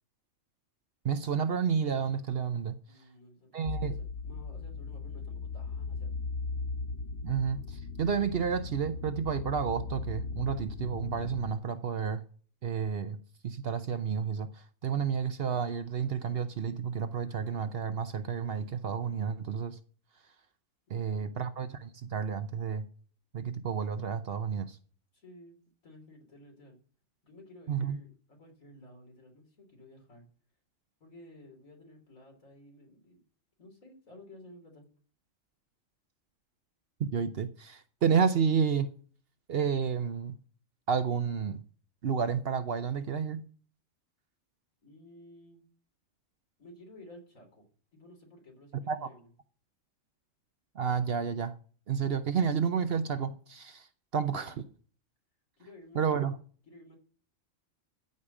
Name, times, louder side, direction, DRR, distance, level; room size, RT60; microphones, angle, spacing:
voice 1, 1.0-2.8 3.5-3.9 7.2-12.2 12.6-13.2 13.4-19.8 20.9-22.9 23.3-24.8 27.7-28.0 37.0-38.9 39.5-40.4 40.9-41.6 42.0-43.4 48.7-49.1 50.7-51.6 51.9-53.9 54.1-54.5 55.9-56.4, right 6 dB, 55° right, 0.8 m, -30 dB
voice 2, 2.9-6.2 20.9-21.3 25.1-25.6 25.8-26.8 27.2-30.2 31.0-33.2 33.6-34.9 44.8-45.6 46.6-47.7 47.9-49.3 54.3-54.7 55.6-56.3 56.7-57.0, left 1 dB, 80° left, 3.8 m, -54 dB
sound 1, 3.7-11.5, left 4 dB, 55° left, 1.1 m, -38 dB
14.0 x 5.0 x 7.2 m
omnidirectional pair, 1.4 m